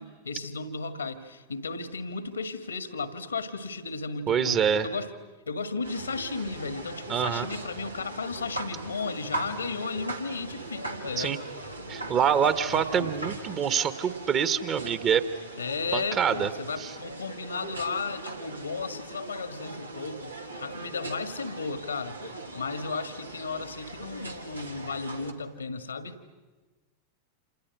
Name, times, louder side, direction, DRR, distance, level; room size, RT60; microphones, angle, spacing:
voice 1, 0.0-5.1 5.5-11.4 12.7-13.1 15.6-22.2 22.5-26.2, left 4 dB, 75° left, 11 dB, 1.9 m, -34 dB
voice 2, 4.3-4.9 7.1-7.5 11.2-11.4 11.9-15.2 15.9-16.5 16.8-16.9, right 8 dB, 30° right, 11 dB, 1.6 m, -25 dB
sound 1, 5.8-25.3, right 2 dB, 85° right, 2.0 m, -40 dB
29.0 x 27.5 x 6.3 m, 1.2 s
figure-of-eight pair, 90°, 0 cm